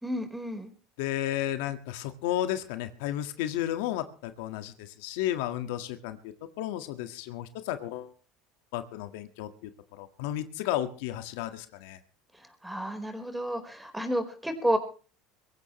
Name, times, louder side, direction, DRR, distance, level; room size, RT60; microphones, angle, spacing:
voice 1, 0.0-0.7 12.3-14.8, equal, 5° right, 6 dB, 4.5 m, -31 dB
voice 2, 1.0-8.1 8.7-12.0, left 12 dB, 80° left, 8 dB, 1.8 m, -33 dB
23.5 x 15.5 x 3.2 m, 0.38 s
supercardioid pair, 110°, 0 cm